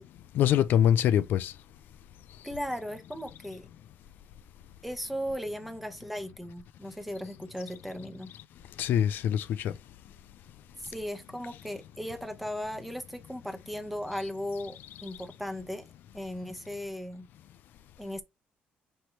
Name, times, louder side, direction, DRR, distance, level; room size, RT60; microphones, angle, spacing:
voice 1, 0.3-1.5 8.8-9.8, left 10 dB, 75° left, 0.4 m, -24 dB
voice 2, 2.4-3.7 4.8-8.3 10.8-15.8 16.1-17.3 18.0-18.2, equal, ahead, 1.0 m, -37 dB
5.5 x 3.2 x 2.9 m
cardioid pair, 125°, 3 cm